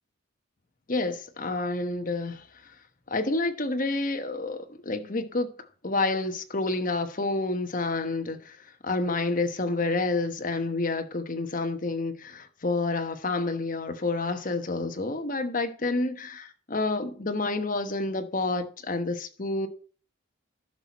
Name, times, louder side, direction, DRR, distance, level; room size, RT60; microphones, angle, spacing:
voice 1, 0.9-2.4 3.1-5.5 5.8-8.6 8.8-19.7, left 2 dB, 40° left, 1.1 m, -29 dB
11.5 x 6.0 x 4.1 m
head